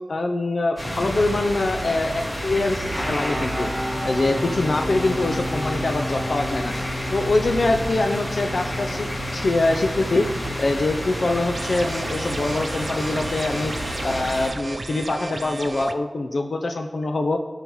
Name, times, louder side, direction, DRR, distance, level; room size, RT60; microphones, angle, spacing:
voice 1, 0.1-3.7 4.0-6.7 7.1-13.7 14.0-17.4, left 2 dB, 80° left, 4 dB, 0.5 m, -24 dB
sound 1, 0.8-14.5, equal, 55° left, 2.8 m, -30 dB
sound 2, 2.9-13.1, left 1 dB, 5° left, 2.1 m, -32 dB
sound 3, 11.5-15.9, right 3 dB, 65° right, 0.4 m, -33 dB
14.0 x 5.5 x 3.1 m, 1.3 s
wide cardioid pair, 55°, 0 cm